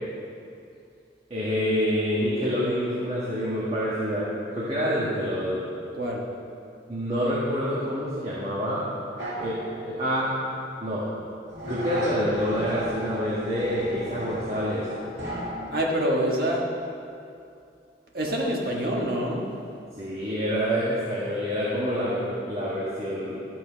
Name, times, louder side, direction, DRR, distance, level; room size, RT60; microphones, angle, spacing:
voice 1, 1.3-4.2 4.5-5.6 6.9-8.9 9.4-9.6 9.8-10.3 10.8-11.1 11.7-14.9 20.0-23.4, equal, 35° right, -8 dB, 1.6 m, -27 dB
sound 1, 9.2-10.5 11.5-15.9, equal, 75° right, 2.3 m, -34 dB
voice 2, 15.7-16.6 18.1-19.4, equal, 55° right, -2 dB, 1.7 m, -26 dB
13.5 x 6.3 x 5.2 m, 2.5 s
head